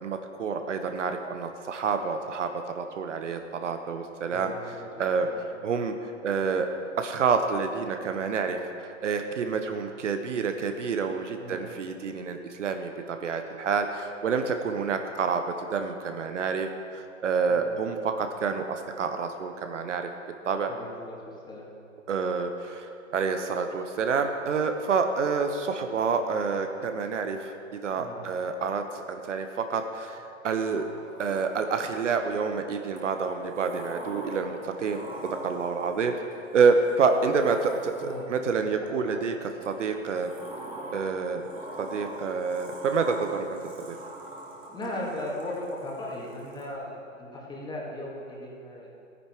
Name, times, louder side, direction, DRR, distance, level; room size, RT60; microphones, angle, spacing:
voice 1, 0.0-5.3 5.6-6.7 7.0-20.1 20.4-20.7 22.1-30.9 31.2-36.1 36.5-40.3 40.9-41.5 41.8-44.0, right 5 dB, 65° right, 6 dB, 1.1 m, -28 dB
voice 2, 4.3-5.4 11.4-11.7 17.5-17.8 20.7-21.2 21.5-21.7 28.0-28.2 38.0-38.2 38.8-39.2 44.7-48.9, left 1 dB, 10° left, -4 dB, 2.3 m, -37 dB
Sliding door, 30.6-32.0 33.0-38.5 39.6-46.7, right 1 dB, 10° right, 2.1 m, -43 dB
14.0 x 9.8 x 4.6 m, 2.5 s
figure-of-eight pair, 120°, 39 cm